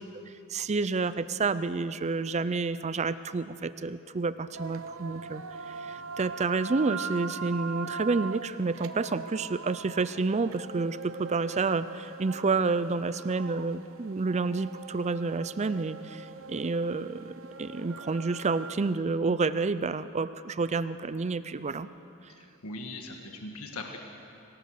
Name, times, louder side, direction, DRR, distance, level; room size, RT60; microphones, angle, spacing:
voice 1, 0.5-21.9, right 4 dB, 30° right, 14 dB, 0.5 m, -29 dB
sound 1, 4.5-18.7, right 5 dB, 65° right, 0.9 m, -41 dB
voice 2, 22.3-24.0, left 2 dB, 75° left, 3 dB, 1.7 m, -40 dB
24.5 x 18.0 x 6.5 m, 2.7 s
head